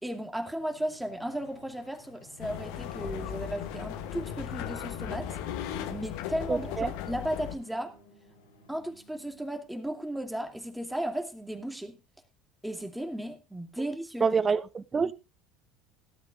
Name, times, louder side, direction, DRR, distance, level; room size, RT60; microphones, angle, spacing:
voice 1, 0.0-5.4 5.9-7.9 8.7-12.0 12.6-14.3, right 1 dB, 5° right, 2.5 m, -35 dB
sound 1, 0.6-9.8, left 2 dB, 80° left, 3.9 m, -53 dB
sound 2, 2.4-7.5, left 10 dB, 65° left, 1.5 m, -37 dB
voice 2, 6.5-6.9 14.2-15.1, right 5 dB, 25° right, 1.0 m, -27 dB
18.0 x 12.5 x 2.4 m
figure-of-eight pair, 70°, 0 cm